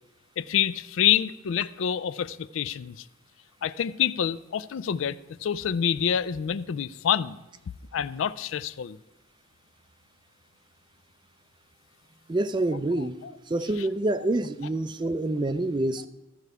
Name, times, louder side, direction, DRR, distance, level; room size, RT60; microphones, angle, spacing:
voice 1, 0.4-3.0 3.6-7.4 7.9-9.0 13.2-13.3 15.0-15.1, left 9 dB, 70° left, 0.4 m, -27 dB
voice 2, 12.3-13.2 13.5-16.1, right 2 dB, 20° right, 0.4 m, -27 dB
14.0 x 4.7 x 6.7 m
head